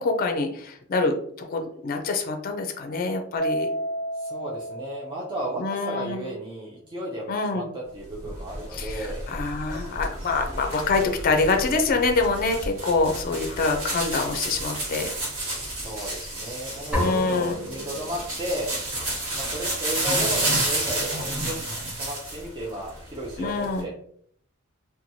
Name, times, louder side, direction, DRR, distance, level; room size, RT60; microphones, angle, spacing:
voice 1, 0.0-3.7 5.6-6.2 7.3-7.6 8.7-15.1 16.9-17.5 23.4-23.9, left 3 dB, 45° left, 4 dB, 0.4 m, -25 dB
Mallet percussion, 3.4-5.8, right 1 dB, 60° right, 0.8 m, -31 dB
voice 2, 4.1-9.2 15.7-18.7 19.4-21.6 22.0-23.9, right 1 dB, 25° right, -4 dB, 0.4 m, -34 dB
sound 1, 8.2-22.5 22.8-23.8, right 1 dB, 80° right, 1.3 m, -31 dB
sound 2, 16.9-18.7, left 1 dB, 5° right, 0.8 m, -31 dB
2.9 x 2.2 x 2.6 m, 0.64 s
head